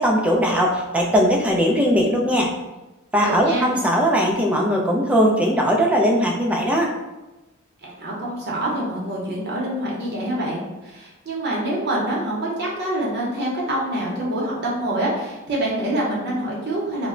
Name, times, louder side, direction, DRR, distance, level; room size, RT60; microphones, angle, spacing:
voice 1, 0.0-2.5 3.1-6.9, equal, 5° right, -1 dB, 0.3 m, -19 dB
voice 2, 3.2-3.7 7.8-17.1, right 1 dB, 55° right, -4 dB, 0.7 m, -26 dB
2.1 x 2.1 x 3.6 m, 1.0 s
head